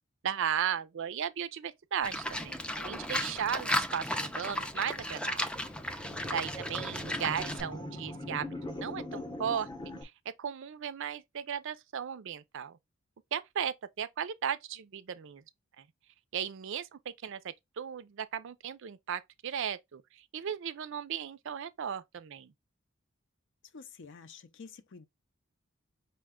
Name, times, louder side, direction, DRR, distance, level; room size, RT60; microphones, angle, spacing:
voice 1, 0.2-5.5 6.3-8.5 8.8-9.7 10.0-10.1 10.4-12.8 13.3-15.4 15.8-15.9 16.3-22.5, right 8 dB, 60° right, 0.4 m, -36 dB
Livestock farm animals working animals, 2.0-7.6, left 1 dB, 5° left, 0.4 m, -35 dB
sound 1, 5.2-10.0, left 1 dB, 20° left, 0.7 m, -41 dB
voice 2, 6.1-6.5 23.7-25.1, left 5 dB, 60° left, 0.5 m, -50 dB
5.5 x 2.2 x 3.5 m
head